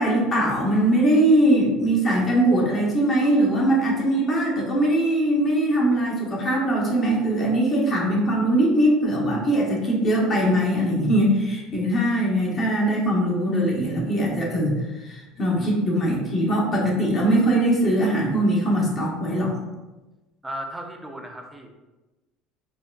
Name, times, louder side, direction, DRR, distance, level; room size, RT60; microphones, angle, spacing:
voice 1, 0.0-14.8 15.0-19.6, right 1 dB, 35° left, -2 dB, 0.9 m, -21 dB
voice 2, 20.4-21.7, right 1 dB, 10° right, 2 dB, 0.5 m, -35 dB
4.3 x 2.1 x 2.4 m, 1.1 s
supercardioid pair, 110°, 0 cm